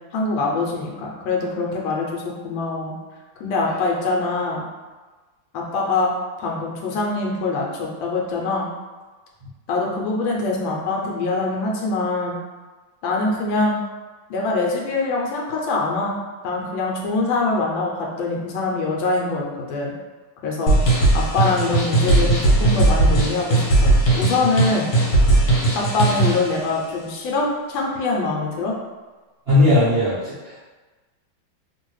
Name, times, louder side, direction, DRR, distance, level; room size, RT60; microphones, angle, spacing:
voice 1, 0.1-2.9 3.4-4.6 5.5-6.1 6.4-8.7 9.7-12.3 13.0-13.8 14.3-16.2 16.4-19.9 20.4-20.8 21.1-24.9 25.7-28.7, left 3 dB, 75° left, -2 dB, 1.4 m, -24 dB
sound 1, 20.7-26.5, right 2 dB, 55° left, 1.3 m, -18 dB
voice 2, 29.5-30.6, left 2 dB, 65° right, -11 dB, 0.6 m, -18 dB
3.0 x 2.9 x 3.1 m, 1.3 s
omnidirectional pair, 2.1 m